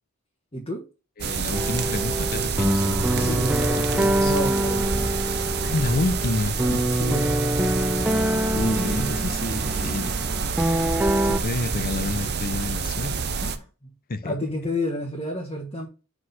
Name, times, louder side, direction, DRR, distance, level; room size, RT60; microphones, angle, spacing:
voice 1, 0.5-0.8 3.1-5.2 6.4-7.4 8.7-9.1 13.4-13.9 14.2-15.9, left 1 dB, 25° left, 1.3 m, -31 dB
voice 2, 1.2-3.4 3.9-4.3 5.6-6.8 8.3-10.1 11.2-13.4 14.1-14.3, left 2 dB, 45° left, 0.7 m, -29 dB
sound 1, 1.2-13.6, right 5 dB, 50° right, 0.7 m, -28 dB
sound 2, 1.5-11.4, right 1 dB, 5° right, 0.3 m, -25 dB
4.8 x 4.2 x 5.5 m
head